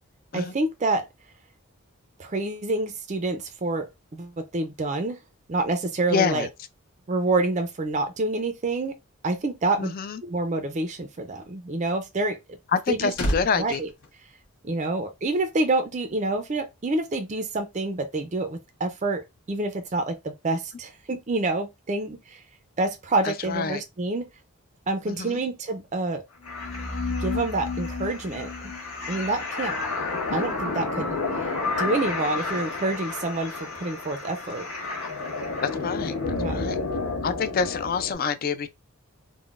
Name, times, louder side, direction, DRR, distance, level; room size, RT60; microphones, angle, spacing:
voice 1, 0.3-1.0 2.2-5.2 5.5-6.5 7.1-9.0 9.2-9.9 10.2-12.4 12.9-13.1 13.6-13.9 14.6-19.2 19.5-22.4 22.8-24.3 24.9-26.2 27.2-28.5 29.1-29.8 30.3-34.7 36.4-36.7, right 2 dB, 30° right, 0.4 m, -27 dB
voice 2, 6.1-6.5 9.8-10.2 12.7-13.8 23.2-23.8 25.1-25.4 35.6-36.8 37.2-38.7, left 5 dB, 40° left, 0.3 m, -27 dB
sound 1, 12.7-15.1 15.4-15.6, equal, 70° left, 1.2 m, -33 dB
sound 2, 26.4-38.2, left 3 dB, 90° left, 1.5 m, -30 dB
3.7 x 2.1 x 2.4 m
head